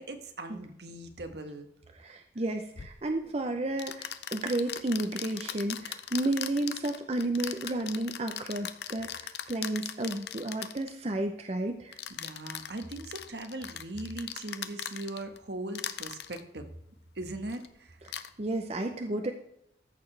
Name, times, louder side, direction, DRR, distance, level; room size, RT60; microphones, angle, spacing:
voice 1, 0.0-1.7 12.1-16.7 17.1-18.0, right 2 dB, 70° right, 7 dB, 1.3 m, -39 dB
voice 2, 1.9-12.0 18.1-19.3, right 2 dB, 35° right, 5 dB, 0.6 m, -32 dB
sound 1, 2.7-2.9 3.8-10.9 11.9-15.4 15.7-16.4 17.5-17.7 18.0-18.3, left 10 dB, 70° left, 0.6 m, -39 dB
14.0 x 6.8 x 3.3 m, 0.77 s
head